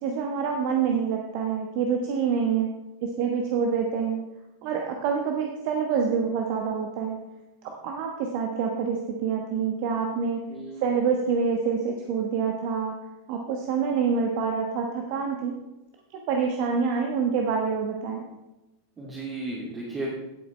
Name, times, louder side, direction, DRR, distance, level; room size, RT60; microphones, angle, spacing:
voice 1, 0.0-2.7 3.0-4.3 4.6-7.2 7.6-10.5 10.8-12.9 13.3-15.5 16.1-18.3, right 6 dB, 45° right, 2 dB, 1.2 m, -26 dB
voice 2, 10.5-11.0 19.0-20.1, right 2 dB, 20° right, -5 dB, 2.5 m, -34 dB
17.0 x 8.0 x 3.3 m, 1.0 s
figure-of-eight pair, 90°, 0 cm